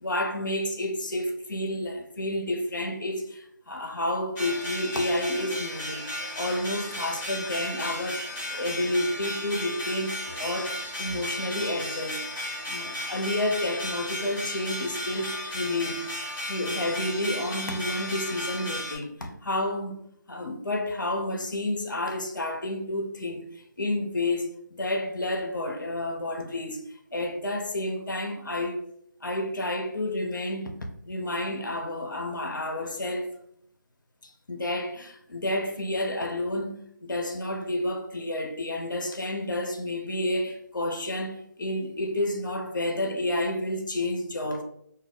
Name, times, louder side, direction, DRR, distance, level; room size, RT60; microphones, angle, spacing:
voice 1, 0.0-6.0 6.4-12.2 12.7-16.1 16.5-20.0 20.3-26.8 27.1-28.8 29.2-33.3 34.2-36.7 37.0-44.6, left 1 dB, 85° left, 0.5 m, -30 dB
sound 1, 4.4-19.0, left 1 dB, 10° left, 0.8 m, -34 dB
2.2 x 2.0 x 3.6 m
figure-of-eight pair, 155°, 10 cm